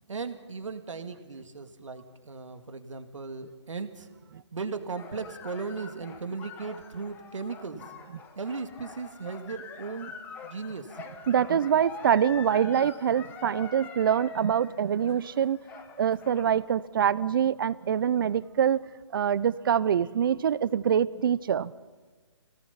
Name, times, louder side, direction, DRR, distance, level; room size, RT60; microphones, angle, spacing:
voice 1, 0.1-4.1 4.5-7.8 8.4-10.1 10.4-11.0, right 4 dB, 85° right, 8 dB, 2.1 m, -37 dB
sound 1, 5.0-16.6, left 5 dB, 10° left, 1.1 m, -45 dB
voice 2, 11.3-15.6 16.0-18.8 19.1-21.7, right 8 dB, 45° right, 19 dB, 0.6 m, -25 dB
25.0 x 18.0 x 5.7 m, 1.4 s
hypercardioid pair, 155°, 16 cm